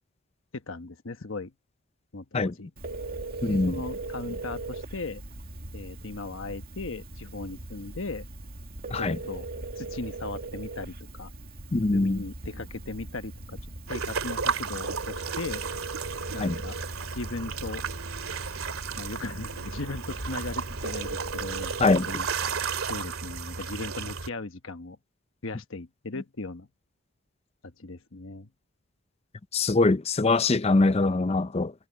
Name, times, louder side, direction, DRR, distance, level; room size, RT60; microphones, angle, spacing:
voice 1, 0.5-1.5 2.1-2.7 3.5-5.2 5.7-8.3 8.9-9.5 9.8-11.3 11.9-13.6 13.9-15.7 16.3-16.8 17.1-17.9 19.0-22.3 22.9-25.0 25.4-26.7 27.6-28.5, left 3 dB, 60° left, 1.1 m, -37 dB
Telephone, 2.8-22.2, right 2 dB, 40° right, 2.2 m, -39 dB
voice 2, 3.4-3.8 8.9-9.2 11.7-12.2 16.4-16.6 21.8-22.1 29.5-31.7, left 3 dB, 25° left, 0.5 m, -23 dB
sound 1, 13.9-24.3, right 5 dB, 75° right, 2.5 m, -33 dB
head